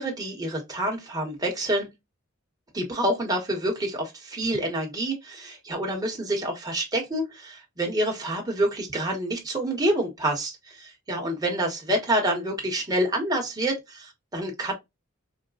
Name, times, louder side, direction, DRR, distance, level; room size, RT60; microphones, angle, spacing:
voice 1, 0.0-1.9 2.7-14.7, right 1 dB, 20° right, 1.2 m, -27 dB
4.5 x 2.2 x 2.3 m
head